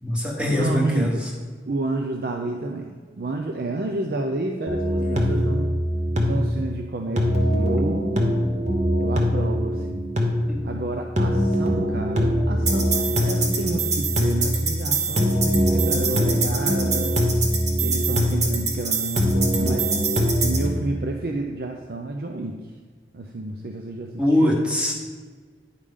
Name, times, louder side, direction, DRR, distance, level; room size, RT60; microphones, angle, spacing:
voice 1, 0.0-1.3 5.0-5.2 10.5-10.6 24.2-24.9, left 1 dB, 5° right, -1 dB, 1.2 m, -23 dB
voice 2, 0.6-1.2 1.7-5.8 6.2-8.1 9.0-10.0 10.6-17.2 17.8-19.9 20.4-22.6 23.1-24.6, right 2 dB, 55° right, 3 dB, 0.5 m, -30 dB
sound 1, 4.7-20.7, right 1 dB, 40° right, 1.0 m, -22 dB
9.7 x 5.1 x 3.6 m, 1.5 s
head